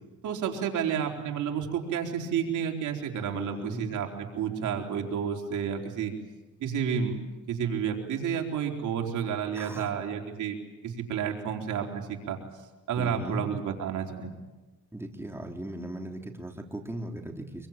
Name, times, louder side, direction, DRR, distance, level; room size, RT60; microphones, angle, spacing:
voice 1, 0.2-6.1 6.6-7.2 7.5-10.6 10.8-12.4 12.9-14.3, right 7 dB, 80° right, 2 dB, 4.2 m, -30 dB
voice 2, 3.3-3.9 9.5-9.9 13.0-13.5 14.9-17.7, right 1 dB, 10° right, 2 dB, 3.8 m, -38 dB
25.5 x 24.0 x 9.0 m, 1.2 s
cardioid pair, 90°, 30 cm